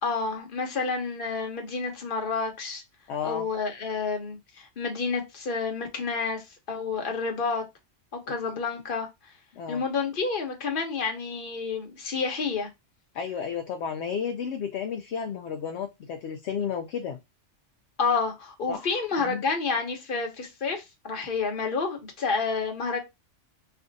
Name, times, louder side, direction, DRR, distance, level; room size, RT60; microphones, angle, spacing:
voice 1, 0.0-2.8 3.2-6.4 6.7-7.6 8.3-9.1 9.7-12.7 18.0-23.0, left 4 dB, 45° left, 1.1 m, -29 dB
voice 2, 3.1-3.5 8.3-8.4 9.5-9.8 13.1-17.2 18.7-19.4, left 7 dB, 70° left, 0.8 m, -32 dB
3.3 x 2.5 x 3.9 m
omnidirectional pair, 1.3 m